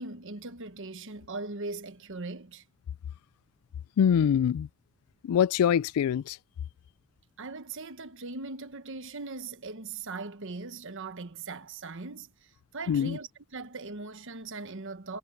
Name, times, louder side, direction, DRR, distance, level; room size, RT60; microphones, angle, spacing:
voice 1, 0.0-2.6 7.4-15.2, right 3 dB, 60° right, 1.2 m, -40 dB
voice 2, 4.0-4.7 5.2-6.4 12.9-13.2, left 8 dB, 90° left, 0.3 m, -24 dB
head